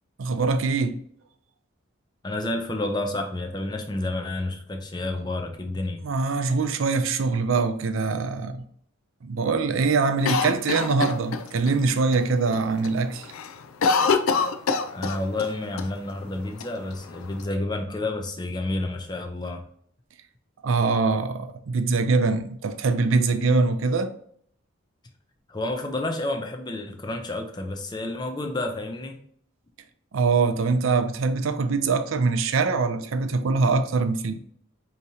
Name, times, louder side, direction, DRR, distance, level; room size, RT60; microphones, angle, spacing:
voice 1, 0.2-1.0 6.0-8.6 9.2-13.3 20.6-24.1 30.1-34.4, right 4 dB, 75° right, 0.5 m, -23 dB
voice 2, 2.2-6.0 14.9-19.6 25.5-29.2, left 2 dB, 20° left, 0.5 m, -30 dB
Cough, 10.3-11.7 12.1-12.2 12.5-12.9 13.2-15.5 15.8-15.9 16.6-17.4, left 5 dB, 85° left, 0.4 m, -25 dB
4.9 x 2.9 x 2.7 m
head